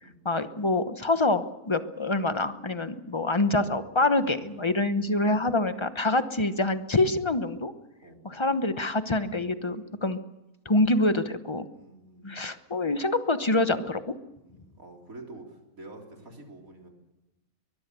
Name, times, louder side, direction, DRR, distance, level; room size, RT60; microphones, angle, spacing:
voice 1, 0.2-7.7 8.2-10.2 10.6-11.7 12.2-14.1, left 2 dB, 20° left, 10 dB, 0.9 m, -26 dB
voice 2, 4.1-5.4 8.0-8.2 11.7-12.5 14.4-16.9, right 2 dB, 60° right, 1 dB, 4.1 m, -48 dB
23.0 x 21.0 x 6.9 m, 0.99 s
omnidirectional pair, 1.6 m